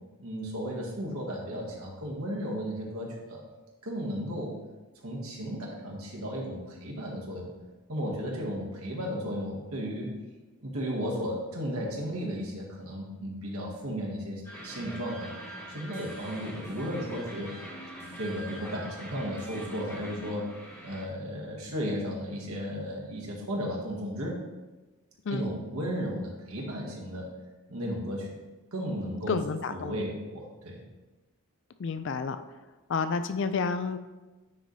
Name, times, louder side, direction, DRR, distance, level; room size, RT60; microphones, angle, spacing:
voice 1, 0.2-3.4 3.8-4.5 5.0-7.5 7.9-10.1 10.6-15.3 15.7-17.5 18.2-20.5 20.8-24.4 25.3-27.3 27.7-28.4 28.7-29.4 29.7-30.8, equal, 75° right, -2 dB, 1.6 m, -34 dB
sound 1, 14.4-21.0, equal, 10° left, 1.3 m, -43 dB
voice 2, 29.3-30.0 31.8-32.4 32.9-34.0, left 4 dB, 55° left, 10 dB, 0.3 m, -30 dB
9.4 x 3.3 x 4.0 m, 1.2 s
head